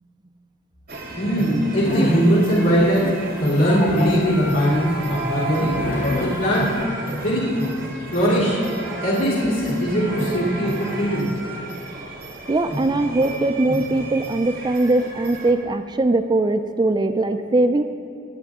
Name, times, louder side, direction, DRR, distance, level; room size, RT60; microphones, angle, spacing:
sound 1, 0.9-15.5, right 1 dB, 50° right, 1.5 m, -32 dB
voice 1, 1.1-3.1 3.4-5.7 6.2-6.8 7.2-7.5 8.1-8.6 9.0-11.3, equal, 80° left, -9 dB, 3.0 m, -20 dB
sound 2, 1.8-2.4 2.8-3.2 3.6-6.9, left 2 dB, 40° left, 0.6 m, -28 dB
voice 2, 12.5-17.8, right 2 dB, 20° right, 7 dB, 0.3 m, -20 dB
19.5 x 7.6 x 3.6 m, 2.5 s
head